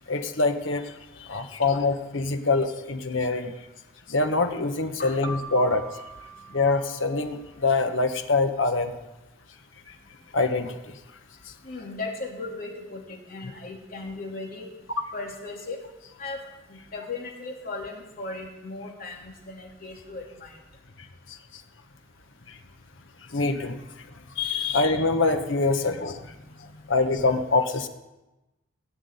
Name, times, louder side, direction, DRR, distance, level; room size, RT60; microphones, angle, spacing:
voice 1, 0.1-0.9 1.2-3.5 4.1-5.8 6.5-9.0 10.3-11.0 21.3-21.4 22.5-22.6 23.3-23.9 24.4-26.3 26.9-27.9, left 3 dB, 70° left, 7 dB, 1.3 m, -25 dB
Keyboard (musical), 5.2-7.8, right 2 dB, 40° right, 3.9 m, -43 dB
voice 2, 11.6-14.7 15.1-15.8 16.2-16.4 16.7-20.5 26.4-26.8, left 3 dB, 45° left, -1 dB, 3.1 m, -37 dB
18.0 x 6.2 x 9.7 m, 1.0 s
head